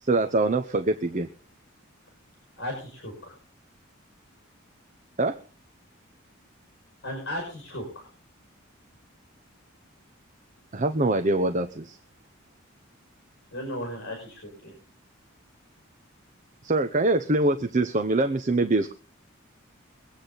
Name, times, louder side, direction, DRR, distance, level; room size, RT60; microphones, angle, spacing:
voice 1, 0.0-1.3 5.2-5.4 10.7-12.0 16.6-18.9, right 2 dB, 35° right, 8 dB, 0.8 m, -24 dB
voice 2, 2.6-3.3 7.0-8.1 13.5-14.7, equal, 55° left, 1 dB, 5.7 m, -35 dB
23.5 x 8.6 x 3.9 m, 0.37 s
head